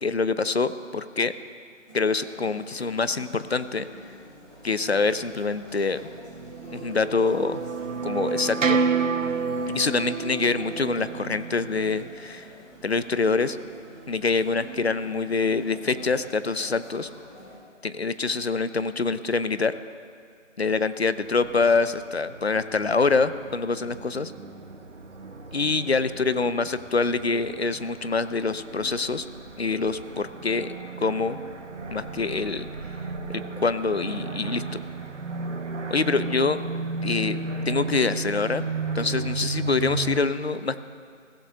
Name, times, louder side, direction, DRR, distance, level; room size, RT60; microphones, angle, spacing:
voice 1, 0.0-1.3 1.9-3.9 4.6-6.0 6.7-7.6 8.0-8.8 9.7-12.5 12.8-13.6 14.1-17.1 17.8-19.7 20.6-24.3 25.5-29.2 29.6-31.4 31.9-32.7 33.6-34.8 35.9-36.6 37.0-38.6 38.9-40.9, left 4 dB, 55° left, 13 dB, 0.6 m, -25 dB
sound 1, 1.9-17.5, right 1 dB, 20° left, 3.8 m, -47 dB
sound 2, 6.3-12.1, right 5 dB, 85° right, 0.9 m, -28 dB
sound 3, 21.2-40.2, right 3 dB, 65° right, 1.3 m, -35 dB
22.0 x 15.5 x 2.8 m, 2.2 s
figure-of-eight pair, 180°, 38 cm